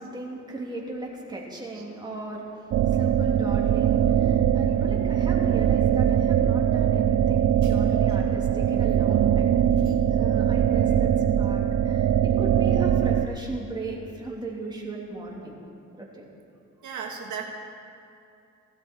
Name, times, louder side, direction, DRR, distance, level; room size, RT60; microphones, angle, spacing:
voice 1, 0.0-9.5 9.8-15.6 15.9-16.3, right 2 dB, 15° right, -3 dB, 3.0 m, -37 dB
sound 1, 2.7-13.3, right 9 dB, 55° right, 0.6 m, -22 dB
voice 2, 16.8-17.4, right 6 dB, 75° right, 1 dB, 1.7 m, -37 dB
17.0 x 12.5 x 4.6 m, 2.6 s
cardioid pair, 90°, 30 cm